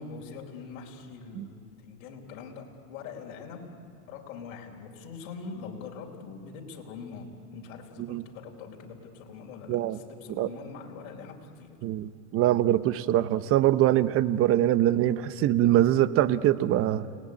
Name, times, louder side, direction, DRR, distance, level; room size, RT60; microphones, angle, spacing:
voice 1, 0.0-3.8 4.1-11.8, left 5 dB, 60° left, 1 dB, 3.9 m, -43 dB
voice 2, 9.7-10.0 10.4-10.5 11.8-17.1, right 13 dB, 35° right, 14 dB, 0.8 m, -23 dB
29.5 x 19.5 x 9.6 m, 2.5 s
supercardioid pair, 135°, 40 cm